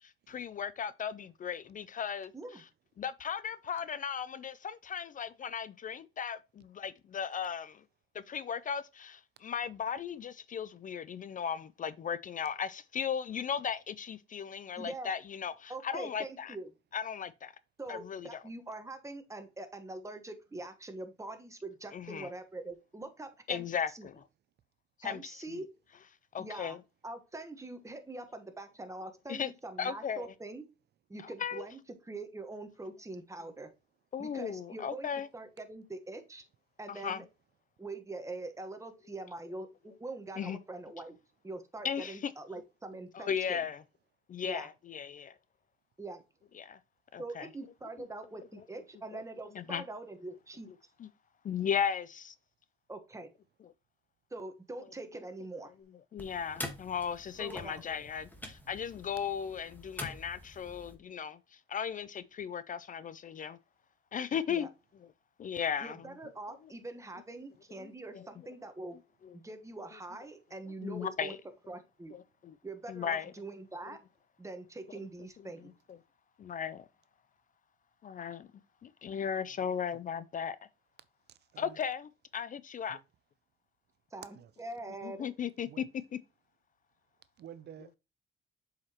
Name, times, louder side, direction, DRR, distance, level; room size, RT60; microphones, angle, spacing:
voice 1, 0.0-2.7 3.0-7.8 8.1-16.6 16.9-17.5 17.9-18.4 21.9-22.3 23.5-24.2 25.0-25.6 26.3-26.8 29.3-29.5 29.8-30.3 31.2-31.6 34.1-35.3 36.9-37.2 40.4-40.6 41.8-42.3 43.1-43.8 44.3-45.3 46.6-46.8 47.1-47.5 48.7-48.8 49.1-49.2 49.5-49.8 51.0-51.1 51.4-52.3 56.1-63.6 64.1-64.7 65.0-65.1 65.4-66.1 67.8-67.9 69.2-69.4 70.8-71.4 72.1-72.6 72.9-73.3 75.6-76.0 76.4-76.9 78.0-78.5 78.8-80.6 81.6-83.0 85.0-85.7 86.1-86.2, left 7 dB, 40° left, 0.4 m, -36 dB
voice 2, 14.8-15.1 15.7-16.7 17.8-23.6 23.9-24.1 25.0-25.7 26.4-26.8 27.0-30.6 31.1-33.7 34.2-35.1 35.3-36.4 36.8-37.2 37.8-41.1 41.4-43.6 44.4-44.7 46.0-46.2 47.2-50.7 52.9-53.3 54.3-55.7 57.4-57.8 64.5-64.7 65.8-69.0 69.3-71.4 71.7-72.2 72.6-74.0 74.4-75.7 84.1-85.3, right 2 dB, 15° right, 1.2 m, -44 dB
sound 1, 56.2-61.0, left 1 dB, 10° left, 1.4 m, -46 dB
voice 3, 81.3-81.8 82.9-83.0 84.3-84.5 85.7-85.9 87.4-88.0, right 10 dB, 55° right, 0.4 m, -51 dB
7.2 x 4.9 x 2.9 m
cardioid pair, 90°, 20 cm